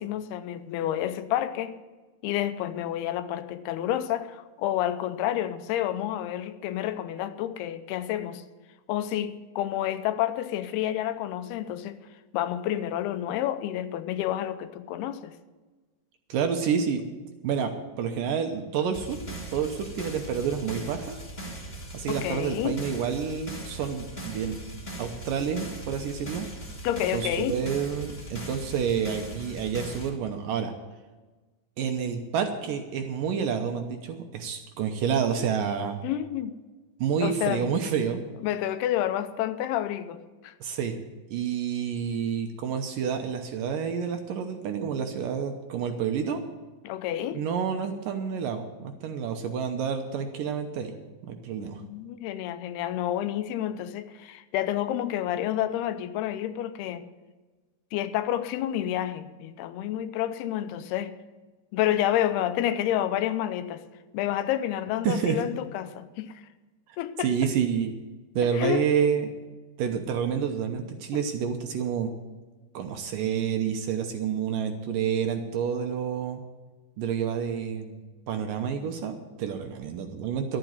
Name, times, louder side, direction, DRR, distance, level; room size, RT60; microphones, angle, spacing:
voice 1, 0.0-1.8 2.2-8.4 8.9-12.0 12.3-15.4 22.1-22.8 26.8-27.5 36.0-36.6 37.2-37.7 38.4-40.5 46.8-47.4 51.6-57.0 57.9-61.2 61.7-63.8 64.1-66.4 67.0-67.5 68.5-68.9, left 12 dB, 85° left, 2.7 m, -29 dB
voice 2, 16.3-17.0 17.4-19.2 19.5-21.2 21.9-24.6 25.0-26.5 27.1-30.7 31.8-36.0 37.0-38.2 40.6-41.0 41.3-46.4 47.3-50.9 51.2-51.8 65.0-65.4 66.9-67.9 68.4-69.3 69.8-72.1 72.7-76.4 77.0-78.0 78.3-80.6, right 7 dB, 70° right, 2.3 m, -29 dB
sound 1, 18.9-30.1, right 1 dB, 15° left, 1.7 m, -39 dB
12.5 x 9.0 x 8.1 m
omnidirectional pair, 4.6 m